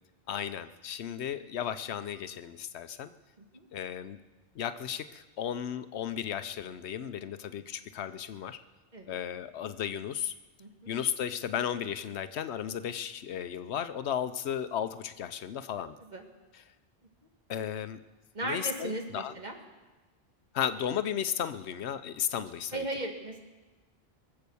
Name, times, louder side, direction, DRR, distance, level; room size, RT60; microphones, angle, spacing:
voice 1, 0.3-3.1 3.7-4.2 4.5-8.6 9.1-10.3 10.9-16.0 16.5-16.6 17.5-18.0 18.4-19.3 20.5-22.9, left 9 dB, 85° left, 12 dB, 1.0 m, -34 dB
voice 2, 18.3-19.6 22.7-23.4, right 1 dB, 45° right, 2 dB, 1.9 m, -36 dB
23.0 x 7.8 x 7.0 m, 1.2 s
omnidirectional pair, 1.1 m